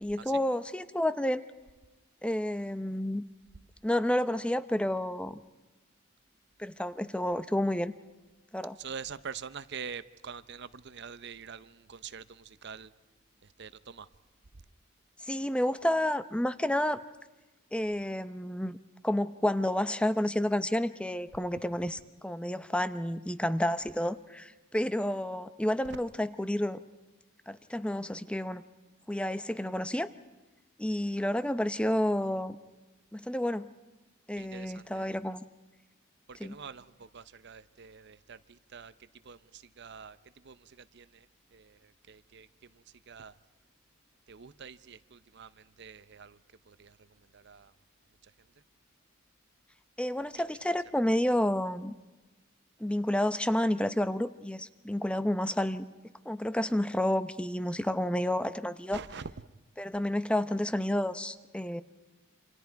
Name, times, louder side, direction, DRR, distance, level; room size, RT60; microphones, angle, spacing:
voice 1, 0.0-1.5 2.2-3.2 3.8-5.4 6.6-7.9 8.5-8.8 15.2-17.0 17.7-18.8 19.0-26.8 27.5-28.6 29.1-30.1 30.8-32.6 33.1-33.7 34.3-35.4 36.4-36.6 50.0-51.9 52.8-55.9 56.3-59.0 59.8-61.8, left 1 dB, 5° left, 13 dB, 0.7 m, -30 dB
voice 2, 8.8-12.9 13.4-14.1 34.4-35.3 36.3-43.3 44.3-46.4 46.7-47.7 48.2-48.3 50.3-50.4 58.9-59.3, right 6 dB, 55° right, 14 dB, 0.7 m, -46 dB
28.5 x 26.5 x 4.7 m, 1.2 s
head